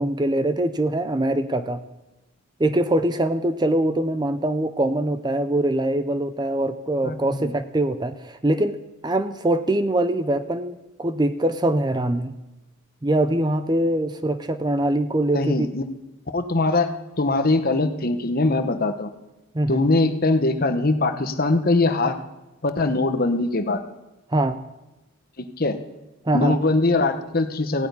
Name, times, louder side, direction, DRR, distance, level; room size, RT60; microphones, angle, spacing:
voice 1, 0.0-1.8 2.6-8.8 9.0-12.3 13.0-15.7 19.5-19.8 24.3-24.6 26.3-26.6, right 1 dB, 20° right, 11 dB, 0.6 m, -23 dB
voice 2, 7.0-7.5 15.3-15.8 16.3-16.9 17.2-19.1 19.7-22.2 22.6-23.8 25.6-25.8 26.3-27.9, left 2 dB, 45° left, 8 dB, 1.0 m, -22 dB
15.5 x 8.4 x 9.6 m, 1.0 s
head